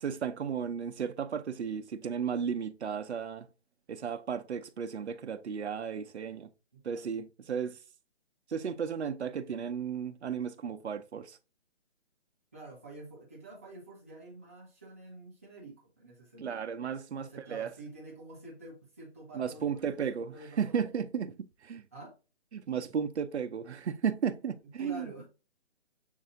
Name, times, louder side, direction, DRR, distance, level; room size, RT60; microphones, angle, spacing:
voice 1, 0.0-3.5 3.9-6.5 6.8-7.8 8.5-11.4 16.4-17.7 19.4-21.4 21.6-21.9 22.5-25.1, right 7 dB, 75° right, 0.7 m, -34 dB
voice 2, 6.7-7.1 12.5-16.7 17.2-21.0 21.9-22.1 24.6-25.3, right 2 dB, 15° right, 0.6 m, -49 dB
6.5 x 2.7 x 2.5 m
hypercardioid pair, 165°, 34 cm